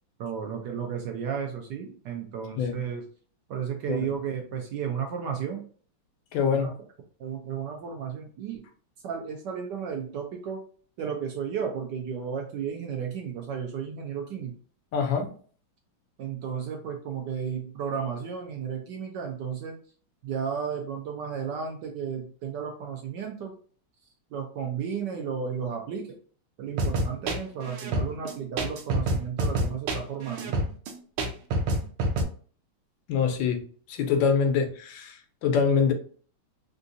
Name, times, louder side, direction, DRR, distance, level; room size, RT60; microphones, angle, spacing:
voice 1, 0.2-3.0 3.5-5.6 6.5-6.7 7.2-8.6 9.0-10.6 11.0-14.5 16.2-19.8 20.2-23.5 24.3-26.1 26.6-30.5, right 7 dB, 70° right, 2 dB, 1.1 m, -33 dB
voice 2, 2.6-2.9 3.9-4.1 6.3-6.7 14.9-15.3 33.1-33.6 33.9-35.9, left 6 dB, 75° left, 5 dB, 1.3 m, -25 dB
sound 1, 26.8-32.2, right 1 dB, 85° right, 1.4 m, -27 dB
3.7 x 2.4 x 2.5 m, 0.43 s
omnidirectional pair, 2.2 m